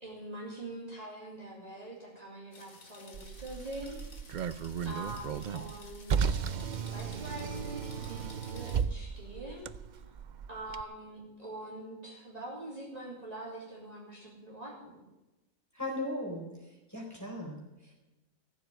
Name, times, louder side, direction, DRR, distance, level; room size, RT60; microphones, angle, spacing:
voice 1, 0.0-4.0 4.8-6.4 6.9-9.7 10.5-15.0, right 1 dB, 30° right, -4 dB, 3.1 m, -44 dB
sound 1, 2.5-8.8, left 3 dB, 75° left, 2.5 m, -54 dB
Car, 3.1-10.8, right 7 dB, 65° right, 0.4 m, -35 dB
voice 2, 15.7-16.5 16.9-17.9, left 1 dB, 10° left, -2 dB, 4.2 m, -37 dB
14.5 x 7.7 x 8.9 m, 1.0 s
omnidirectional pair, 1.4 m